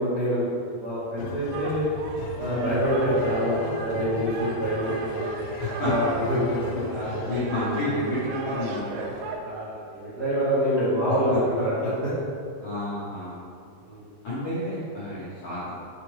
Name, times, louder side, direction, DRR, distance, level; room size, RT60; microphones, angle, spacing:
voice 1, 0.0-1.8 2.4-5.3 5.8-7.6 9.4-12.1 13.8-14.1, equal, 60° right, -12 dB, 1.0 m, -26 dB
sound 1, 1.2-7.5, left 5 dB, 85° left, 2.4 m, -39 dB
sound 2, 1.5-9.4, right 3 dB, 85° right, 1.8 m, -35 dB
voice 2, 2.5-2.8 5.6-5.9 7.3-9.1 12.6-13.4 14.2-15.7, left 1 dB, 70° left, -11 dB, 1.4 m, -30 dB
7.2 x 5.0 x 3.1 m, 2.4 s
omnidirectional pair, 4.4 m